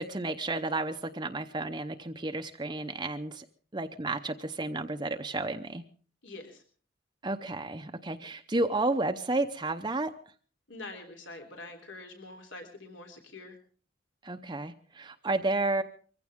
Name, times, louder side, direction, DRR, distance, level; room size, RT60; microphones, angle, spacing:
voice 1, 0.0-3.4 3.7-5.8 7.2-10.1 14.2-15.8, right 2 dB, 20° right, 6 dB, 0.7 m, -31 dB
voice 2, 6.2-6.6 10.7-13.6, left 2 dB, 75° left, 4 dB, 3.5 m, -45 dB
23.0 x 15.5 x 3.6 m, 0.42 s
head